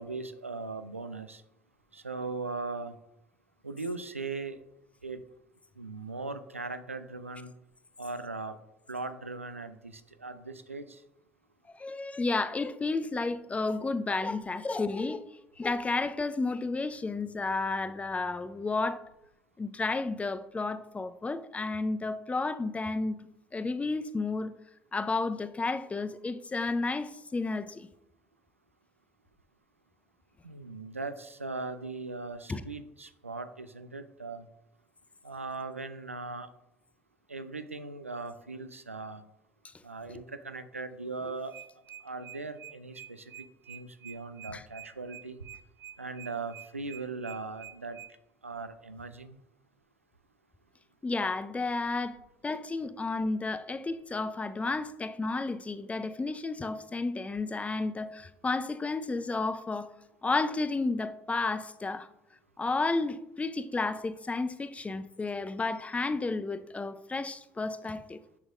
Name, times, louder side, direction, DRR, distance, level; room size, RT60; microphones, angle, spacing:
voice 1, 0.0-1.4 1.9-3.0 3.6-4.6 5.0-5.2 5.8-7.5 8.0-8.6 8.9-11.0 30.4-34.5 35.2-36.5 37.3-39.2 39.8-41.5 42.0-43.3 43.7-45.4 46.0-48.0 48.4-49.4 52.5-52.6, right 3 dB, 90° right, 0.4 m, -39 dB
voice 2, 11.8-15.3 15.6-19.0 19.6-23.2 23.5-24.5 24.9-27.9 32.5-32.6 44.5-44.6 51.0-52.2 52.4-59.9 60.2-62.1 62.6-68.2, left 3 dB, 20° left, 0.5 m, -32 dB
sound 1, 41.3-48.1, right 11 dB, 45° right, 0.6 m, -47 dB
9.6 x 6.3 x 2.5 m
figure-of-eight pair, 55°, 7 cm